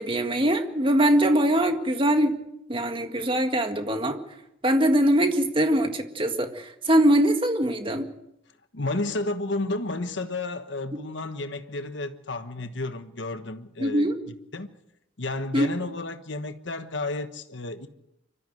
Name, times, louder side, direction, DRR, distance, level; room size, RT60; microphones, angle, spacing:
voice 1, 0.0-2.4 2.7-4.2 4.6-8.1 13.8-14.1 15.5-15.7, right 1 dB, 30° right, 1.8 m, -22 dB
voice 2, 8.7-14.7 15.2-17.9, left 2 dB, 75° left, 1.3 m, -32 dB
24.5 x 14.0 x 7.9 m
head